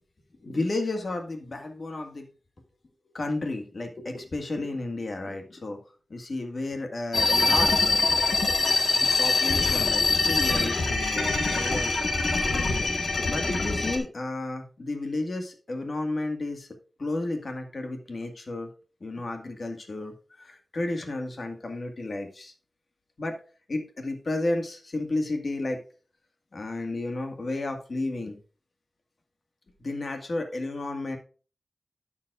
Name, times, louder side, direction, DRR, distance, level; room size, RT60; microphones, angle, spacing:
voice 1, 0.4-2.3 3.1-5.8 6.1-8.0 8.9-11.9 12.5-16.7 17.0-18.7 19.0-22.5 23.2-23.4 23.7-25.8 26.5-28.4 29.8-31.2, left 2 dB, 55° left, 4 dB, 1.9 m, -32 dB
sound 1, 7.1-14.0, left 3 dB, 70° left, 1.5 m, -24 dB
11.5 x 7.3 x 2.5 m, 0.37 s
wide cardioid pair, 110°, 0 cm